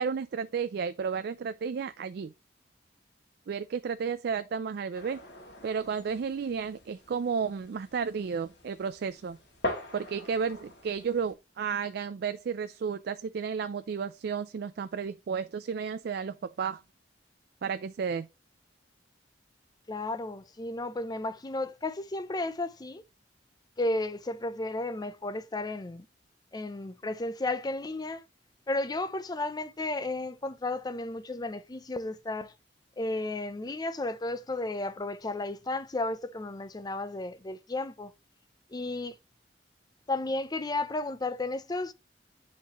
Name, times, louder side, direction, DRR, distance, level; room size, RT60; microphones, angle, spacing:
voice 1, 0.0-2.3 3.5-5.2 5.6-9.4 9.9-16.8 17.6-18.3, right 6 dB, 60° right, 0.4 m, -32 dB
sound 1, 4.9-11.3, left 1 dB, 70° left, 2.2 m, -42 dB
voice 2, 19.9-23.0 23.8-26.1 26.5-28.2 28.7-32.5 33.0-38.1 38.7-39.2 40.1-41.9, left 2 dB, 25° left, 0.6 m, -33 dB
10.5 x 4.0 x 3.0 m
head